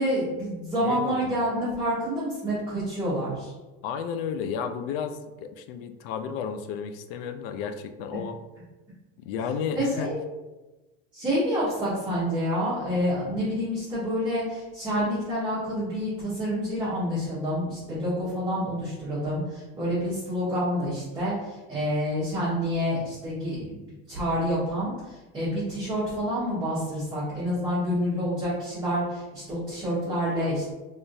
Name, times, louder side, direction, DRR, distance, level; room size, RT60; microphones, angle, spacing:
voice 1, 0.0-3.5 9.7-10.1 11.1-23.8 24.1-30.7, equal, 15° right, -12 dB, 1.5 m, -28 dB
voice 2, 0.8-1.4 3.8-8.4 9.2-10.1, left 7 dB, 75° left, 9 dB, 0.5 m, -32 dB
3.5 x 3.4 x 2.7 m, 1.1 s
cardioid pair, 155°, 30 cm